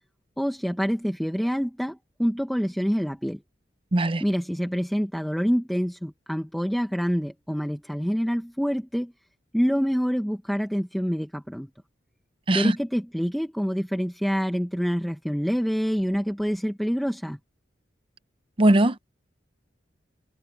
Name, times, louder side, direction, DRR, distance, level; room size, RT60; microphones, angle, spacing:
voice 1, 0.4-3.4 4.2-9.1 9.5-11.7 12.5-17.4, equal, ahead, 1.5 m, -26 dB
voice 2, 3.9-4.2 12.5-12.8 18.6-19.0, right 1 dB, 30° right, 0.7 m, -20 dB
head